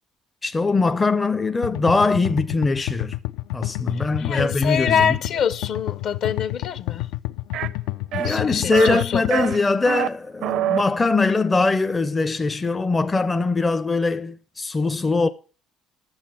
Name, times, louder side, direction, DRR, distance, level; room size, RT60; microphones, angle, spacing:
voice 1, 0.4-3.2 3.5-5.2 8.1-15.3, left 3 dB, 15° left, 0.5 m, -22 dB
sound 1, 1.6-9.6, left 18 dB, 85° left, 0.5 m, -29 dB
voice 2, 3.9-7.1 8.2-9.2, left 8 dB, 55° left, 0.9 m, -25 dB
sound 2, 7.5-7.7 8.1-8.4 8.7-9.0 9.3-10.1 10.4-10.8, right 12 dB, 65° right, 0.5 m, -25 dB
10.5 x 7.2 x 5.9 m
cardioid pair, 120°, 0 cm